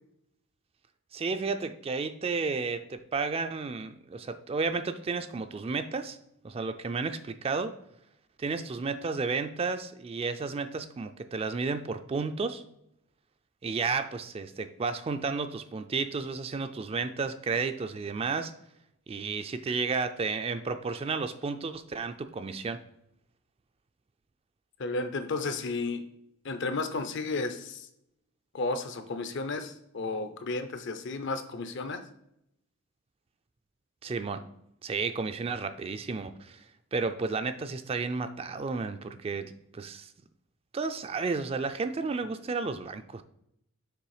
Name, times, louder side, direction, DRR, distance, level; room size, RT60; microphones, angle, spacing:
voice 1, 1.1-6.2 6.4-7.7 8.4-12.6 13.6-18.5 19.1-22.8 34.0-34.4 34.8-36.6 36.9-40.1 40.7-43.2, right 4 dB, 30° right, 9 dB, 0.3 m, -32 dB
voice 2, 24.8-26.0 26.4-27.9 28.5-32.0, left 3 dB, 60° left, 9 dB, 0.6 m, -33 dB
6.8 x 3.3 x 4.8 m, 0.78 s
head